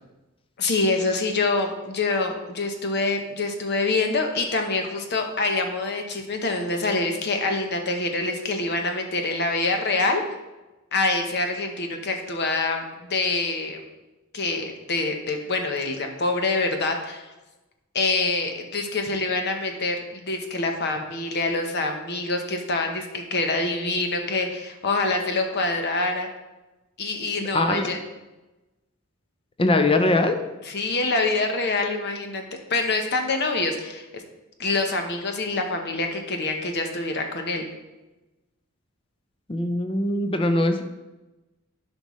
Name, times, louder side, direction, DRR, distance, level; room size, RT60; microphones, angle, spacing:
voice 1, 0.6-10.2 10.9-12.8 13.1-13.8 14.3-17.3 17.9-26.3 27.0-28.0 30.6-34.2 34.6-37.6, left 3 dB, 50° left, 4 dB, 0.9 m, -25 dB
voice 2, 27.5-27.9 29.6-30.4 39.5-40.8, left 2 dB, 25° left, 7 dB, 0.6 m, -21 dB
11.0 x 5.4 x 3.2 m, 1.1 s
head